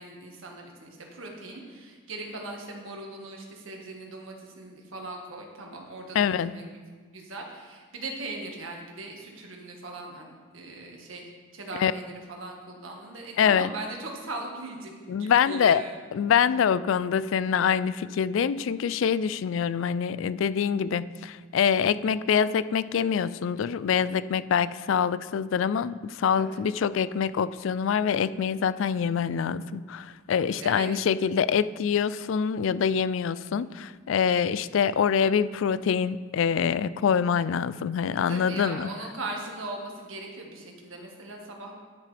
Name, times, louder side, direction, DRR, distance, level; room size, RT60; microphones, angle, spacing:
voice 1, 0.0-6.7 7.1-16.0 26.3-26.6 30.6-30.9 38.3-41.7, right 2 dB, 75° right, 1 dB, 1.6 m, -39 dB
voice 2, 6.1-6.5 11.8-11.9 13.4-13.7 15.1-15.8 16.1-38.9, left 7 dB, 70° left, 17 dB, 0.3 m, -25 dB
10.5 x 10.5 x 3.4 m, 1.5 s
head